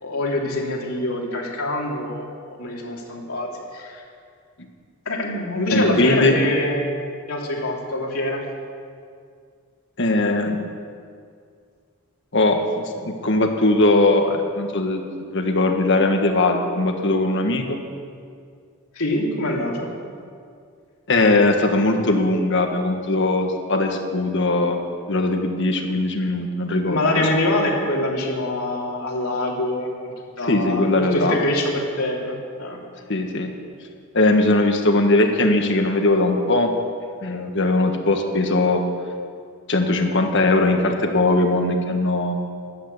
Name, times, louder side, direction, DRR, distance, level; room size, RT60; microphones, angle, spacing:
voice 1, 0.0-2.3 2.6-4.0 5.0-6.9 7.3-8.4 18.9-19.9 26.8-32.8, left 1 dB, 75° left, -2 dB, 3.0 m, -25 dB
voice 2, 5.7-6.4 10.0-10.6 12.3-15.0 15.3-17.8 21.1-24.8 25.1-27.3 30.5-31.4 33.1-33.5 34.1-36.7 37.2-38.8 39.7-42.4, left 2 dB, 55° left, 4 dB, 1.6 m, -20 dB
13.0 x 11.5 x 8.2 m, 2.2 s
head